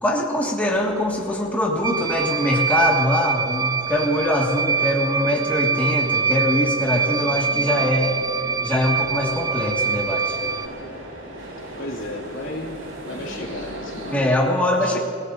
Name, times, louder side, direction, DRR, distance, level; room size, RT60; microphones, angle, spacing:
voice 1, 0.0-8.2 8.6-10.4 14.1-15.0, left 1 dB, 10° left, -3 dB, 1.9 m, -22 dB
sound 1, 0.7-14.2, right 1 dB, 85° right, 4.8 m, -39 dB
sound 2, 1.8-10.7, right 5 dB, 20° right, 0.3 m, -24 dB
voice 2, 11.8-12.8 13.0-15.0, left 1 dB, 85° left, -1 dB, 2.6 m, -34 dB
28.5 x 17.0 x 2.7 m, 2.8 s
head